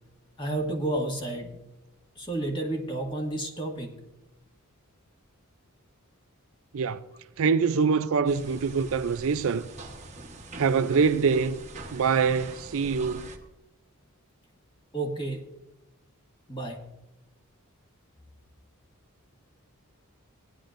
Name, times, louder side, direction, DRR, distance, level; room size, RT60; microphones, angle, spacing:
voice 1, 0.4-1.5 2.1-4.0 14.9-15.4 16.5-16.8, right 2 dB, 20° left, 1.8 m, -31 dB
voice 2, 7.4-9.7 10.6-11.6 11.9-13.3, right 5 dB, 65° right, 0.5 m, -24 dB
sound 1, 8.3-13.4, right 2 dB, 30° right, 1.2 m, -44 dB
17.5 x 10.5 x 2.6 m
head